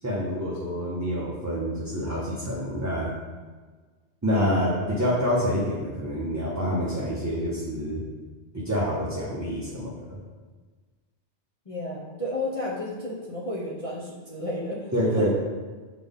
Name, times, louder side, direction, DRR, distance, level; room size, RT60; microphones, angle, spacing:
voice 1, 0.0-3.1 4.2-8.0 8.5-10.2 14.9-15.3, equal, 20° right, -5 dB, 0.7 m, -27 dB
voice 2, 11.7-14.9, left 1 dB, 35° left, -7 dB, 0.8 m, -32 dB
6.5 x 4.0 x 3.6 m, 1.4 s
omnidirectional pair, 1.2 m